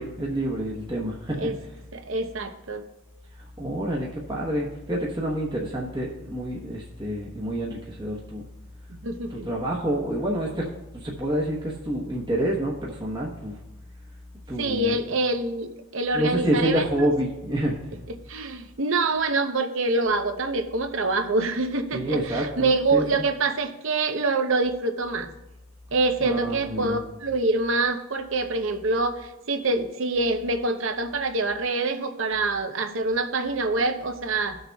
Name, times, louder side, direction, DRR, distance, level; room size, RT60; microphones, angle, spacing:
voice 1, 0.0-1.5 3.4-8.5 9.3-13.6 14.5-15.0 16.1-17.8 21.9-23.2 26.2-27.0, right 1 dB, 20° right, -3 dB, 1.1 m, -28 dB
voice 2, 1.9-2.8 8.9-9.5 14.6-16.9 18.3-25.3 25.9-34.6, right 3 dB, 60° right, 7 dB, 0.8 m, -25 dB
18.5 x 6.5 x 2.3 m, 0.95 s
head